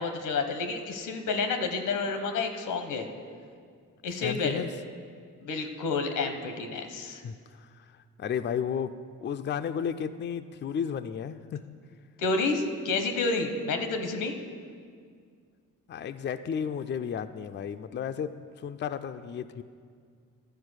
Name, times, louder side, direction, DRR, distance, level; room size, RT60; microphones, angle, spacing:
voice 1, 0.0-3.1 4.0-4.6 5.4-7.2 12.2-14.3, left 3 dB, 90° left, 7 dB, 0.9 m, -30 dB
voice 2, 4.2-4.7 7.2-7.8 8.2-8.9 9.2-11.7 15.9-18.3 18.6-19.6, left 7 dB, 35° left, 9 dB, 0.4 m, -33 dB
12.0 x 4.7 x 6.3 m, 2.1 s
cardioid pair, 70°, 31 cm